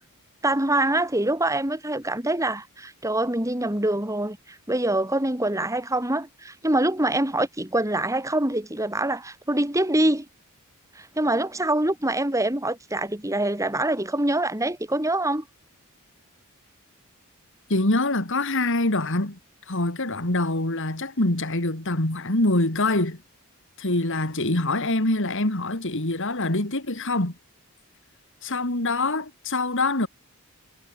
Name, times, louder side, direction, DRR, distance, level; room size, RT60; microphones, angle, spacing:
voice 1, 0.4-10.3 10.9-15.4, right 1 dB, 15° right, 3.1 m, -25 dB
voice 2, 17.7-19.4 19.7-23.2 23.8-27.3 28.4-30.1, left 2 dB, 60° left, 3.0 m, -24 dB
head